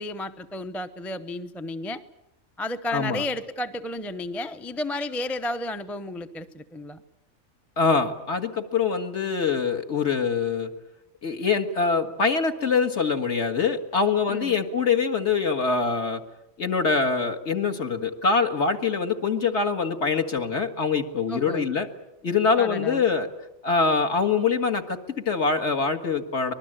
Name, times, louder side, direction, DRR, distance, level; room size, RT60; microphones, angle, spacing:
voice 1, 0.0-2.0 2.6-7.0 14.3-14.6 21.3-21.7 22.6-23.1, left 1 dB, ahead, 9 dB, 0.6 m, -32 dB
voice 2, 2.9-3.3 7.8-10.7 11.2-16.2 16.6-21.9 22.2-23.3 23.6-26.5, left 5 dB, 55° left, 5 dB, 2.1 m, -24 dB
24.5 x 20.5 x 8.9 m, 0.87 s
omnidirectional pair, 1.4 m